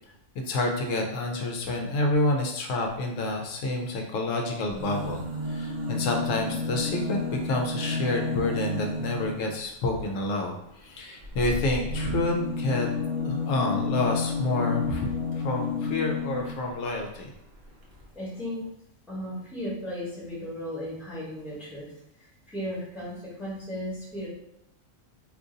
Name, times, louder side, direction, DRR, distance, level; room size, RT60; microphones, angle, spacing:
voice 1, 0.5-10.6 10.8-12.9 13.2-17.3, left 2 dB, 90° left, 2 dB, 1.0 m, -28 dB
sound 1, 4.7-9.5 11.2-16.7 17.6-17.7 17.9-18.0, left 3 dB, 50° right, 0.6 m, -31 dB
voice 2, 18.1-18.7 19.1-21.9 22.2-24.3, equal, ahead, -7 dB, 0.9 m, -35 dB
2.6 x 2.5 x 3.7 m, 0.78 s
omnidirectional pair, 1.3 m